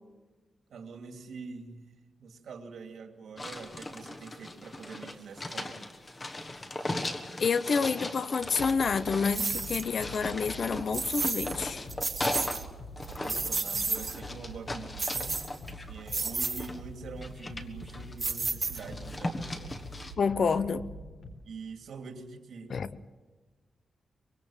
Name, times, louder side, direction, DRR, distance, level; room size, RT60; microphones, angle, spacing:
voice 1, 0.7-1.9 2.2-5.8 13.0-15.4 15.9-19.8 21.4-22.8, right 4 dB, 75° right, 5 dB, 2.8 m, -45 dB
sound 1, 3.4-12.7 13.0-16.8 17.2-18.3 18.7-20.1, left 1 dB, 20° left, 1.4 m, -38 dB
voice 2, 7.4-11.9 20.2-20.8 22.7-22.9, left 5 dB, 50° left, 13 dB, 0.8 m, -28 dB
sound 2, 8.4-21.3, equal, 80° left, 4.0 m, -45 dB
sound 3, 9.3-9.9 10.9-11.6 11.9-12.6 13.0-14.2 15.0-15.7 16.1-16.7 18.2-19.1, right 4 dB, 30° right, 1.3 m, -32 dB
24.5 x 22.0 x 7.3 m, 1.2 s
wide cardioid pair, 170°, 0 cm